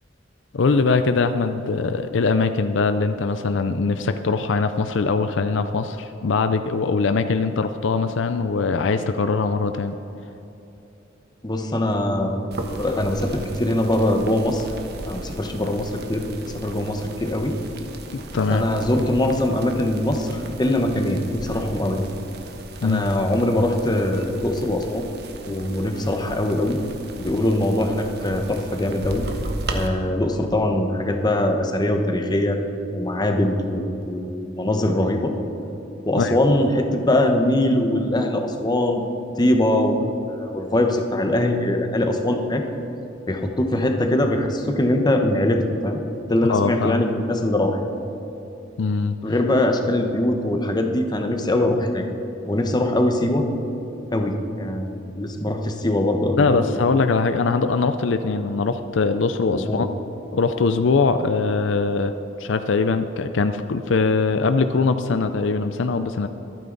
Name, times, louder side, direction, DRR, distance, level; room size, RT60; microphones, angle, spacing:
voice 1, 0.5-9.9 18.1-18.6 22.8-23.0 36.2-36.4 46.5-47.1 48.8-49.1 56.4-59.9 60.3-62.1 62.4-66.3, left 4 dB, 70° left, 9 dB, 0.5 m, -22 dB
voice 2, 11.4-12.4 12.8-14.6 15.1-16.2 16.5-17.6 18.5-22.0 22.8-25.0 25.5-26.8 27.2-29.2 29.7-32.6 32.9-35.3 36.1-39.0 39.4-42.6 43.3-46.0 46.3-47.8 49.2-52.0 52.5-53.4 54.1-56.6 59.5-59.9, left 1 dB, 20° left, 4 dB, 1.1 m, -22 dB
sound 1, 12.5-29.9, right 2 dB, 55° right, 1.2 m, -36 dB
24.0 x 9.3 x 4.0 m, 3.0 s
head